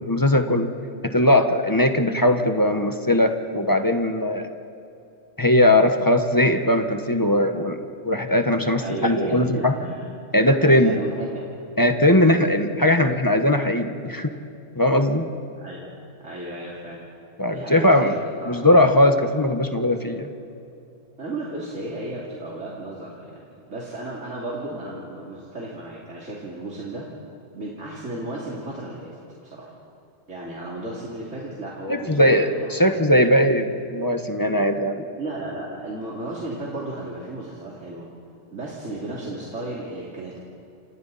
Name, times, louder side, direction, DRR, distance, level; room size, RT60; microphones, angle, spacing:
voice 1, 0.0-0.7 1.1-4.5 5.4-7.8 8.0-9.7 10.3-11.0 11.8-14.3 14.7-15.2 17.4-18.2 18.5-20.3 31.9-35.1, left 1 dB, 15° left, 6 dB, 1.3 m, -19 dB
voice 2, 8.8-11.5 15.5-17.0 17.5-18.6 21.2-27.1 27.5-29.7 30.3-33.0 35.2-38.1 38.5-40.4, right 2 dB, 70° right, -5 dB, 3.3 m, -34 dB
29.0 x 28.0 x 4.2 m, 2.7 s
omnidirectional pair, 1.3 m